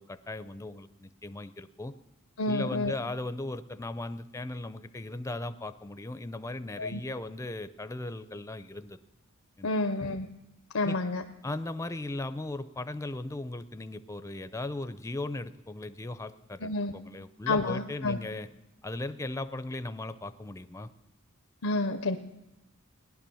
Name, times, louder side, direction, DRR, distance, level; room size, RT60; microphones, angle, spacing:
voice 1, 0.0-1.9 2.5-9.0 9.6-9.7 10.8-11.0 11.4-18.5 18.8-20.9, left 2 dB, 15° left, 12 dB, 0.5 m, -37 dB
voice 2, 2.4-3.0 6.8-7.0 9.6-10.3 10.7-11.2 16.6-16.9 17.5-18.2 21.6-22.2, left 2 dB, 85° left, 7 dB, 0.7 m, -29 dB
18.0 x 11.0 x 7.0 m, 0.97 s
head